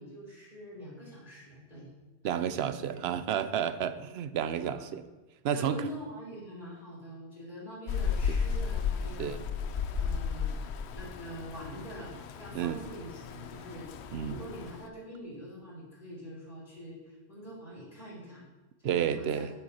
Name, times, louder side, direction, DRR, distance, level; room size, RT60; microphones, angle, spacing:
voice 1, 0.0-1.9 2.2-3.0 4.6-4.9 5.5-9.4 9.9-10.5 10.9-13.9 14.2-18.4 18.8-19.5, equal, 45° left, -7 dB, 3.7 m, -44 dB
voice 2, 2.2-5.0 5.4-5.8 8.3-8.4 9.2-9.4 12.5-12.8 14.1-14.4 18.8-19.5, right 9 dB, 75° right, 13 dB, 0.8 m, -31 dB
Rain, 7.9-14.9, left 6 dB, 75° left, 0.9 m, -34 dB
9.4 x 7.8 x 4.3 m, 1.2 s
omnidirectional pair, 1.1 m